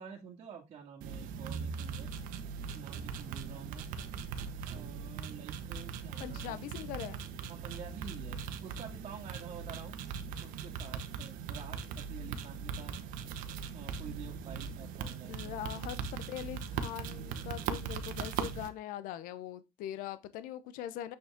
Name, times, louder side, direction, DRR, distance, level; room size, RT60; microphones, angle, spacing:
voice 1, 0.0-2.2 2.5-3.9 4.7-6.9 7.5-10.0 10.4-13.0 13.7-16.0, right 7 dB, 45° right, 2.1 m, -49 dB
sound 1, 1.0-18.7, right 6 dB, 75° right, 1.3 m, -40 dB
voice 2, 6.2-7.2 15.3-16.0 16.3-21.2, left 11 dB, 75° left, 0.9 m, -41 dB
7.6 x 7.1 x 3.6 m
cardioid pair, 150°, 14 cm